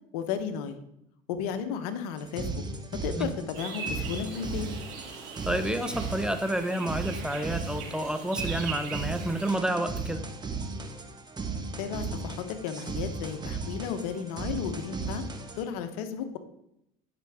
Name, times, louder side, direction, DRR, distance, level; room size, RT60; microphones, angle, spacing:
voice 1, 0.1-0.8 1.3-2.6 2.9-4.7 11.8-15.3 15.6-16.4, left 7 dB, 75° left, 9 dB, 1.0 m, -34 dB
sound 1, 2.2-15.6, right 4 dB, 20° right, 1.3 m, -36 dB
sound 2, 3.5-9.6, right 5 dB, 70° right, 2.7 m, -40 dB
voice 2, 5.4-10.2, right 1 dB, 5° right, 8 dB, 0.8 m, -30 dB
11.0 x 6.0 x 3.6 m, 0.80 s
hypercardioid pair, 85°, 20 cm